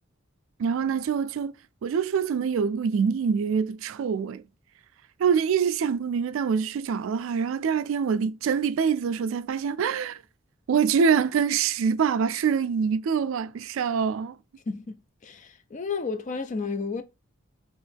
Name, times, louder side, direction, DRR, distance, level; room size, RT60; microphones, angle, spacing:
voice 1, 0.6-1.5 1.8-4.4 5.2-10.2 10.7-14.4, right 6 dB, 70° right, 0.3 m, -25 dB
voice 2, 14.7-15.0 15.2-17.0, left 4 dB, 35° left, 0.4 m, -32 dB
4.5 x 3.0 x 3.4 m
head